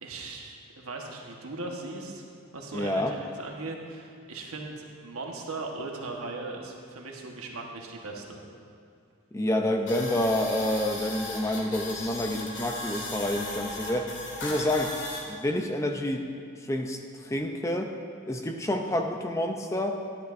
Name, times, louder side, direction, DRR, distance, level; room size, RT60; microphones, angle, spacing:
voice 1, 0.0-2.3 2.5-8.4, right 3 dB, 85° right, 0 dB, 1.3 m, -38 dB
voice 2, 2.7-3.1 9.3-14.1 14.4-14.9 15.3-16.2 16.6-17.9 18.3-20.0, left 1 dB, 15° left, 4 dB, 0.5 m, -28 dB
sound 1, 9.9-15.2, left 2 dB, 55° left, 1.8 m, -37 dB
13.5 x 10.5 x 2.6 m, 2.3 s
head